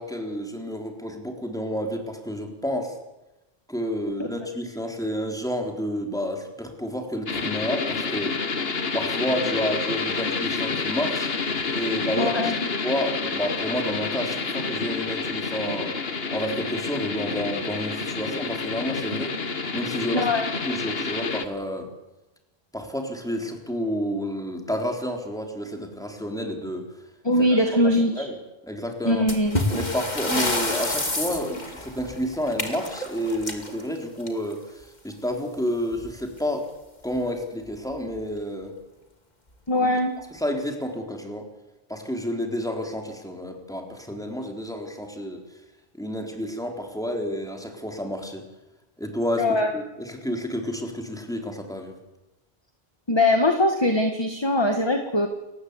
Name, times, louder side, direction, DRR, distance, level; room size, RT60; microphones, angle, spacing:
voice 1, 0.0-3.0 3.7-8.4 8.9-11.3 11.7-15.9 16.3-19.3 19.7-20.3 20.7-21.9 22.7-26.8 27.5-28.4 28.6-29.2 29.7-36.7 37.0-38.8 39.7-39.9 40.3-41.5 41.9-45.4 45.9-48.4 49.0-52.0, equal, 5° left, 2 dB, 3.9 m, -30 dB
sound 1, 7.3-21.4, left 4 dB, 70° left, 1.6 m, -29 dB
voice 2, 12.2-12.6 20.1-20.5 27.2-28.2 29.0-29.6 39.7-40.1 49.4-49.7 53.1-55.3, left 1 dB, 25° left, 4 dB, 1.8 m, -21 dB
sound 2, 29.3-34.7 35.9-36.1 36.4-36.5 37.1-37.2 37.9-38.2, left 1 dB, 45° left, 2.8 m, -29 dB
29.5 x 15.0 x 8.3 m, 1.0 s
omnidirectional pair, 1.0 m